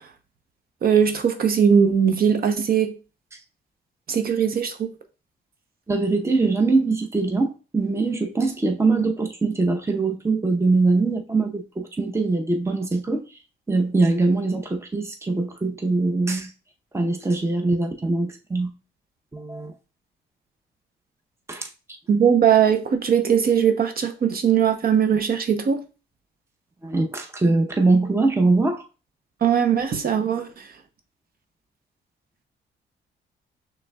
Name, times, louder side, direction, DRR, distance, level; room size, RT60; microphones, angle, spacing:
voice 1, 0.8-2.9 4.1-4.9 22.1-25.8 29.4-30.5, right 7 dB, 50° right, 0.7 m, -20 dB
voice 2, 5.9-13.2 13.7-16.5 16.9-18.7 19.3-19.7 21.5-21.7 26.8-28.8, right 3 dB, 15° right, 0.7 m, -22 dB
6.1 x 3.3 x 2.3 m
cardioid pair, 90°, 19 cm